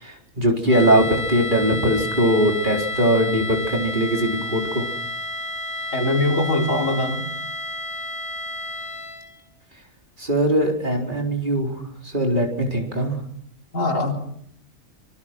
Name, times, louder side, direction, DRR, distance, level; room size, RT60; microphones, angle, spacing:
voice 1, 0.0-4.9 10.2-11.7 12.0-13.2, right 1 dB, 35° right, 1 dB, 4.4 m, -21 dB
sound 1, 0.7-9.4, left 2 dB, 40° left, 3.9 m, -31 dB
voice 2, 5.9-7.3 13.7-14.1, left 2 dB, 75° left, 1 dB, 4.6 m, -22 dB
25.0 x 25.0 x 6.1 m, 0.69 s
omnidirectional pair, 1.4 m